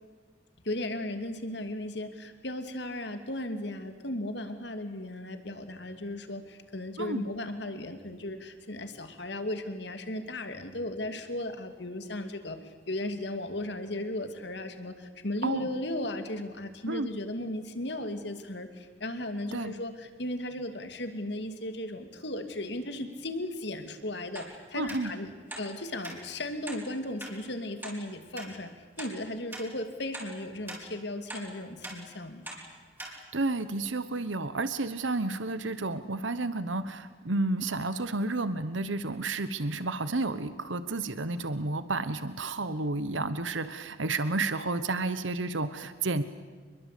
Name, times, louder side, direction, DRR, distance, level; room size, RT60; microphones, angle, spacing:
voice 1, 0.6-25.3 25.6-32.4, left 1 dB, 60° left, 8 dB, 2.7 m, -36 dB
sound 1, 24.4-24.5 24.9-25.0 25.5-25.7 26.0-26.2 26.7-26.8 27.2-27.3 27.8-28.0 28.4-28.5 29.0-29.1 29.5-29.7 30.1-30.3 30.7-30.8 31.3-31.5 31.8-32.0 32.5-32.6 33.0-33.1 33.6-33.7, right 1 dB, 10° right, 4.8 m, -41 dB
voice 2, 24.8-25.1 33.0-46.2, right 2 dB, 75° right, 12 dB, 1.2 m, -31 dB
27.5 x 22.0 x 8.5 m, 1.4 s
head